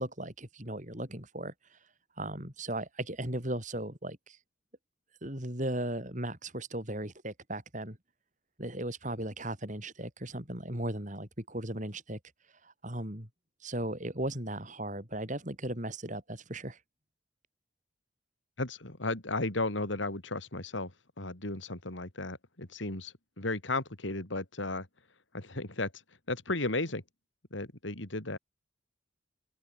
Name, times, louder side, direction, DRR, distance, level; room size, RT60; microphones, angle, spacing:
voice 1, 0.0-1.8 2.2-4.4 5.2-8.0 8.6-12.2 12.6-13.3 13.6-16.8, right 1 dB, 40° right, 6.1 m, -37 dB
voice 2, 18.6-20.9 21.2-24.9 25.3-25.9 26.3-27.0 27.5-28.4, left 2 dB, 80° left, 3.3 m, -34 dB
head